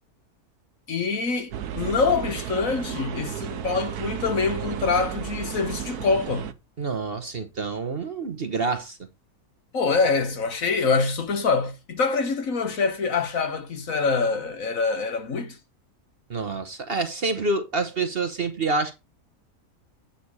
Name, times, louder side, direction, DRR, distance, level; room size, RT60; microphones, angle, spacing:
voice 1, 0.9-6.5 9.7-15.6, left 4 dB, 60° left, 1.8 m, -25 dB
sound 1, 1.5-6.5, right 10 dB, 85° right, 1.3 m, -33 dB
voice 2, 6.8-9.0 16.3-19.0, right 3 dB, 45° right, 1.1 m, -27 dB
8.8 x 6.7 x 4.0 m
omnidirectional pair, 1.6 m